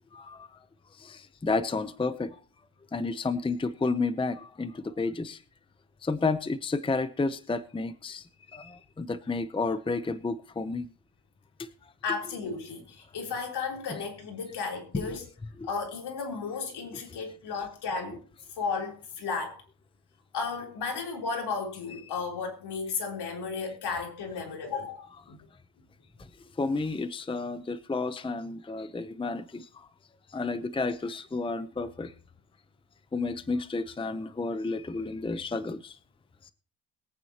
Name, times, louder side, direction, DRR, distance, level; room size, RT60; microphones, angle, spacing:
voice 1, 0.1-0.5 1.0-2.4 2.9-5.4 6.0-8.2 8.5-10.9 11.6-11.7 13.9-14.0 14.9-15.2 26.6-29.9 30.3-32.1 33.1-36.0, left 3 dB, 15° left, 0.7 m, -31 dB
voice 2, 12.0-15.3 15.6-18.2 18.6-19.6 20.3-25.4, left 5 dB, 70° left, 3.6 m, -34 dB
22.5 x 9.0 x 2.9 m
cardioid pair, 100°, 41 cm